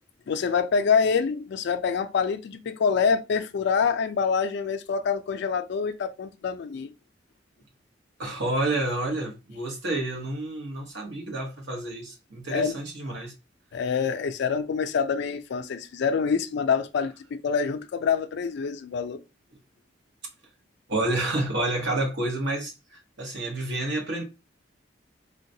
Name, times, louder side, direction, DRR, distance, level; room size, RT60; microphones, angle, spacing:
voice 1, 0.3-6.9 12.5-12.8 13.7-19.2, left 6 dB, 60° left, 0.4 m, -26 dB
voice 2, 8.2-13.3 20.9-24.2, right 2 dB, 65° right, 1.0 m, -29 dB
3.8 x 2.1 x 2.6 m
head